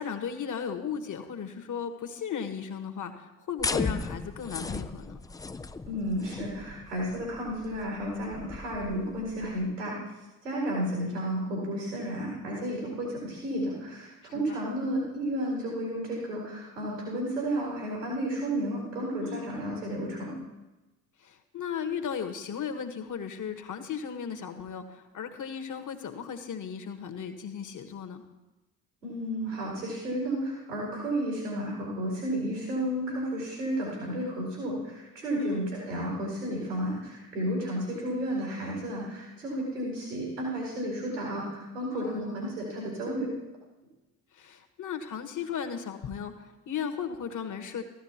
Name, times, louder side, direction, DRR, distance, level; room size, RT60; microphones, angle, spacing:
voice 1, 0.0-5.2 14.2-14.6 19.2-19.7 21.2-28.2 35.4-35.7 41.9-42.5 44.3-47.8, left 7 dB, 40° left, 7 dB, 1.5 m, -36 dB
sound 1, 3.6-9.6, left 4 dB, 10° left, 0.3 m, -36 dB
voice 2, 5.8-10.0 10.4-20.3 29.0-43.3, right 1 dB, 85° right, -3 dB, 4.3 m, -32 dB
14.5 x 12.5 x 3.0 m, 1.1 s
figure-of-eight pair, 50°, 45 cm